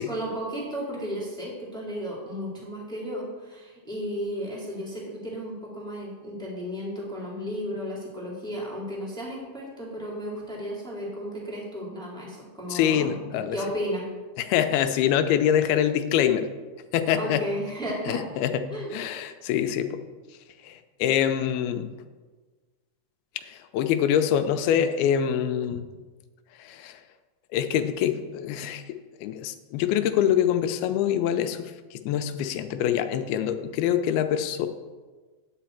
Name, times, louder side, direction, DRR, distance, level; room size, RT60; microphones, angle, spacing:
voice 1, 0.1-13.2 13.5-14.1 17.1-18.2 18.7-18.9, equal, ahead, -4 dB, 1.4 m, -34 dB
voice 2, 12.7-13.6 14.4-16.5 16.9-17.5 18.1-18.6 18.9-20.0 20.6-21.9 23.4-25.8 26.6-27.0 27.5-34.7, left 9 dB, 80° left, 9 dB, 2.5 m, -25 dB
10.5 x 9.0 x 4.5 m, 1.4 s
omnidirectional pair, 4.5 m